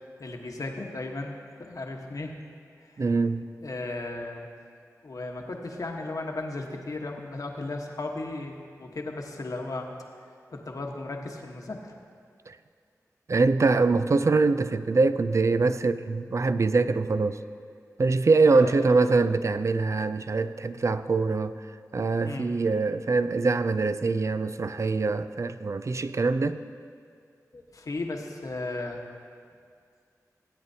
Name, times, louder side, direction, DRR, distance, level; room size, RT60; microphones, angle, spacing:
voice 1, 0.2-2.3 2.8-3.0 3.6-4.5 5.0-9.9 10.5-12.0 18.5-18.9 22.2-22.5 27.5-29.0, left 2 dB, 60° left, 2 dB, 1.2 m, -35 dB
voice 2, 3.0-3.4 12.5-12.6 13.3-17.4 18.0-21.6 21.9-26.6, right 3 dB, 50° right, 12 dB, 0.4 m, -23 dB
17.5 x 8.7 x 2.8 m, 2.2 s
cardioid pair, 40°, 6 cm